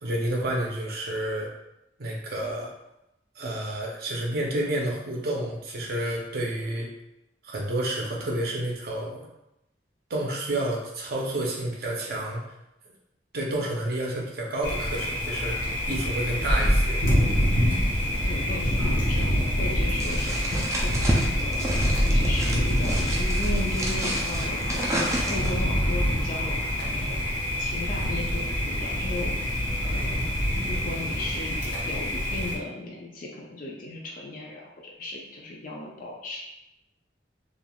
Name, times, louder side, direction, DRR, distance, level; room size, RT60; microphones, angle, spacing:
voice 1, 0.0-1.5 2.0-2.7 3.4-6.9 7.4-9.3 10.1-12.4 13.3-17.0, right 1 dB, 55° right, -2 dB, 0.6 m, -30 dB
Thunder, 14.6-32.6, equal, 80° left, 0.8 m, -26 dB
voice 2, 18.2-20.5 20.8-21.7 22.1-29.3 29.8-30.3 30.7-36.4, left 2 dB, 50° left, -2 dB, 0.4 m, -36 dB
sound 1, 20.0-25.7, right 1 dB, 15° right, 0.4 m, -31 dB
3.3 x 2.4 x 2.3 m, 0.87 s
head